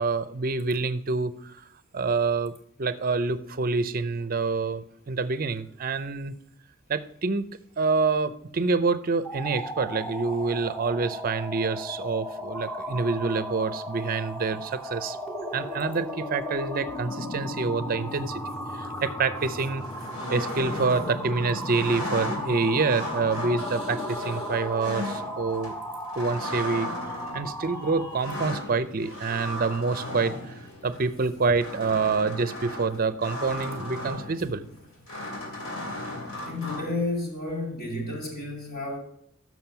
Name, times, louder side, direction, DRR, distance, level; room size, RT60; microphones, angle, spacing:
voice 1, 0.0-1.6 1.9-2.5 2.8-6.3 6.9-7.5 7.8-15.2 15.5-18.4 18.7-19.8 20.3-25.7 26.2-26.9 27.3-30.4 30.8-34.7, right 4 dB, 45° right, 0.5 m, -27 dB
sound 1, 9.1-28.6, equal, 10° left, 0.7 m, -35 dB
sound 2, 19.4-37.2, left 1 dB, 85° left, 2.7 m, -37 dB
voice 2, 36.4-39.0, left 2 dB, 45° left, 2.8 m, -31 dB
7.2 x 6.2 x 5.8 m
head